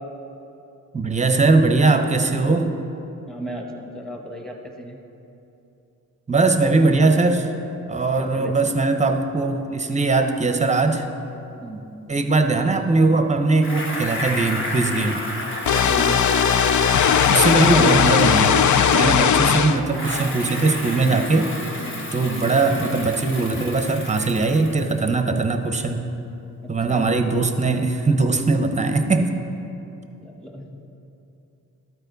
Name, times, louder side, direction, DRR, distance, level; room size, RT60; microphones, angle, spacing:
voice 1, 0.9-2.7 6.3-7.5 7.9-11.1 12.1-15.2 17.3-18.6 18.9-21.5 22.1-26.0 26.7-29.3, right 3 dB, 20° right, 7 dB, 0.8 m, -20 dB
voice 2, 3.3-5.0 8.2-8.5 11.6-11.9 15.8-16.2 17.5-18.0 21.8-22.1 26.6-27.1 30.2-30.8, equal, ahead, 1 dB, 1.3 m, -35 dB
Bicycle, 13.6-19.4 19.9-25.1, left 1 dB, 30° left, 1.4 m, -32 dB
sound 1, 15.7-19.8, left 7 dB, 55° left, 0.5 m, -17 dB
12.5 x 4.4 x 4.0 m, 2.9 s
supercardioid pair, 50°, 36 cm